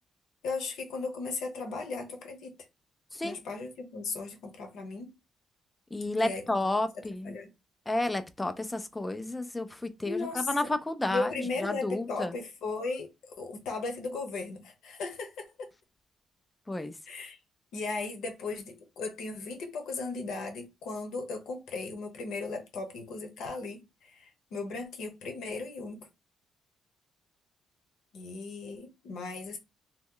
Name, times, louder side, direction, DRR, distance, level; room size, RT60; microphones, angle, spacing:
voice 1, 0.4-2.5 3.2-5.1 6.2-6.4 7.2-7.5 10.0-10.7 11.1-15.7 17.1-17.4 17.7-26.1 28.1-29.6, left 3 dB, 80° left, 0.9 m, -36 dB
voice 2, 5.9-7.4 7.9-12.3 16.7-16.9, left 2 dB, 10° left, 0.4 m, -31 dB
3.0 x 2.2 x 3.7 m
cardioid pair, 145°, 0 cm